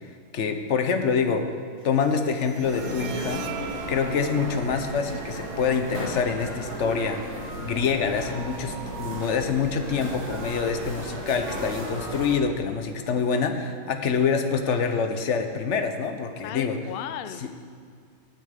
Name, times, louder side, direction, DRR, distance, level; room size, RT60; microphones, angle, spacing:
voice 1, 0.3-1.5 1.8-3.4 3.9-7.3 7.6-16.8 17.4-17.5, left 5 dB, 55° left, 7 dB, 1.1 m, -26 dB
Bowed string instrument, 1.8-8.8, right 9 dB, 75° right, 1.1 m, -42 dB
sound 1, 2.6-12.3, equal, 45° right, 3.1 m, -35 dB
voice 2, 16.4-17.5, left 10 dB, 80° left, 11 dB, 0.5 m, -36 dB
9.2 x 8.4 x 8.2 m, 2.1 s
omnidirectional pair, 1.6 m